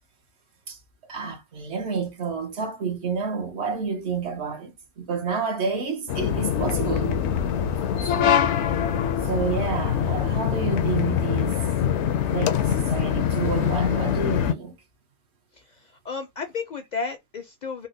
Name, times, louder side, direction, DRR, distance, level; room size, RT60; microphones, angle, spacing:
voice 1, 1.1-7.2 7.9-8.4 9.2-11.6 12.3-14.7, right 5 dB, 75° right, 1.3 m, -30 dB
sound 1, 6.1-14.5, left 8 dB, 85° left, 0.9 m, -24 dB
voice 2, 15.5-17.9, left 5 dB, 60° left, 0.5 m, -34 dB
4.1 x 2.1 x 2.6 m
omnidirectional pair, 1.1 m